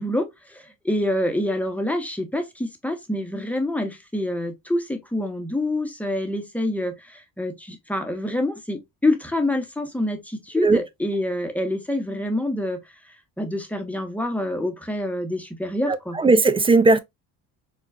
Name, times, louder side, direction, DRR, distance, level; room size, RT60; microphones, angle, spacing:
voice 1, 0.0-12.8 13.4-16.2, left 1 dB, 5° left, 0.9 m, -26 dB
voice 2, 15.9-17.0, right 3 dB, 15° right, 0.3 m, -17 dB
4.4 x 2.4 x 2.4 m
cardioid pair, 100°, 34 cm